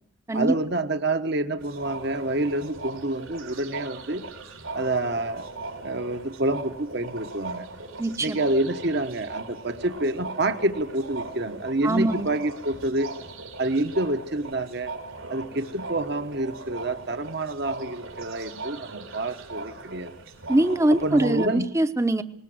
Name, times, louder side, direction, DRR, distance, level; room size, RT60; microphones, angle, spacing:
voice 1, 0.3-4.2 4.7-5.5 5.8-7.7 8.2-13.1 13.6-14.9 15.3-20.1 21.0-21.6, right 2 dB, 55° right, 8 dB, 1.1 m, -27 dB
sound 1, 1.6-21.5, right 3 dB, 90° right, 4.5 m, -39 dB
voice 2, 8.0-8.4 11.8-12.3 20.5-22.2, right 1 dB, 15° right, 10 dB, 0.8 m, -22 dB
20.0 x 20.0 x 7.8 m, 0.71 s
head